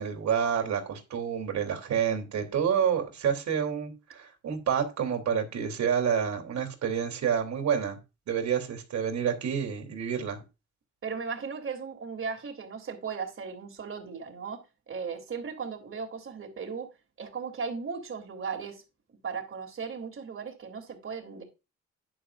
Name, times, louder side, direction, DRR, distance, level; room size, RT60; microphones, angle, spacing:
voice 1, 0.0-8.0 8.3-10.4, right 7 dB, 65° right, 3.2 m, -28 dB
voice 2, 11.0-14.6 14.9-16.9 17.2-18.8 19.2-21.4, right 5 dB, 45° right, 3.1 m, -36 dB
10.0 x 10.0 x 2.5 m
cardioid pair, 90°, 30 cm